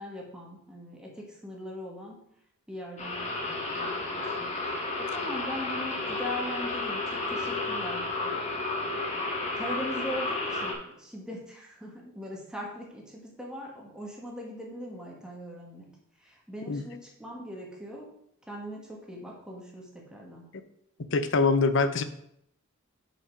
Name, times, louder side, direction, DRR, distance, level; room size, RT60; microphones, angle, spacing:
voice 1, 0.0-2.2 2.7-7.0 7.3-8.4 9.5-15.9 16.2-18.1 18.5-20.5, equal, 5° right, -2 dB, 1.7 m, -40 dB
sound 1, 3.0-10.7, left 2 dB, 35° left, 1.6 m, -32 dB
voice 2, 21.1-22.0, left 4 dB, 60° left, 11 dB, 0.6 m, -24 dB
5.9 x 5.6 x 5.2 m, 0.75 s
head